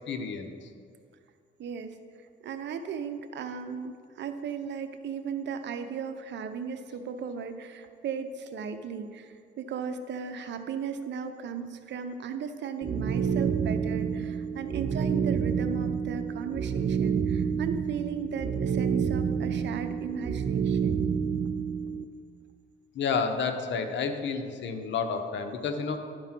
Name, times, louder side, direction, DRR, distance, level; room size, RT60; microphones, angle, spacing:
voice 1, 0.1-0.5 22.9-26.0, left 5 dB, 65° left, 6 dB, 1.0 m, -30 dB
voice 2, 1.6-2.0 2.4-21.1, right 6 dB, 65° right, 8 dB, 0.7 m, -36 dB
sound 1, 12.8-22.0, right 7 dB, 35° right, 0.5 m, -28 dB
11.0 x 4.8 x 5.9 m, 2.2 s
cardioid pair, 90°, 20 cm